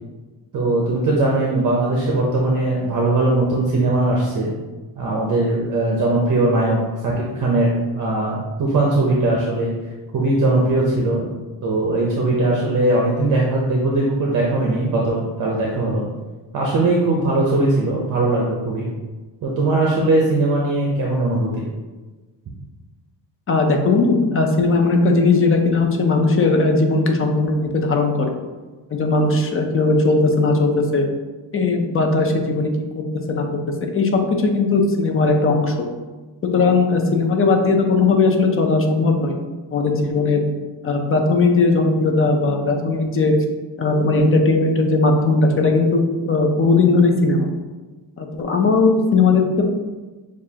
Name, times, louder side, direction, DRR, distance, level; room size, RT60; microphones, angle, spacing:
voice 1, 0.5-4.5 5.0-9.7 10.1-11.2 11.6-16.1 16.5-18.9 19.4-21.6, right 2 dB, 45° right, -2 dB, 0.7 m, -20 dB
voice 2, 23.5-28.3 28.9-31.0 31.5-32.7 33.0-33.5 33.8-35.7 36.5-39.4 39.7-40.4 40.8-43.3 43.8-47.5 48.2-49.6, left 3 dB, 30° left, 3 dB, 0.5 m, -18 dB
6.7 x 2.5 x 2.8 m, 1.2 s
cardioid pair, 150°, 45 cm